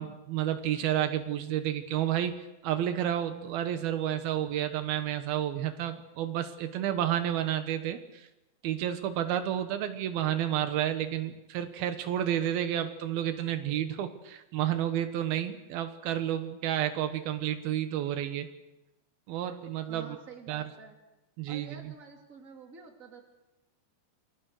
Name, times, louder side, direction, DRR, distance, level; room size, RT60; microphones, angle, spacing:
voice 1, 0.0-2.3 2.6-8.3 8.6-18.5 19.3-20.2 20.5-20.7 21.4-21.9, right 11 dB, 85° right, 9 dB, 3.1 m, -31 dB
voice 2, 19.9-21.0 21.5-23.2, right 5 dB, 25° right, 3 dB, 2.8 m, -48 dB
28.5 x 21.5 x 6.6 m, 0.99 s
omnidirectional pair, 4.3 m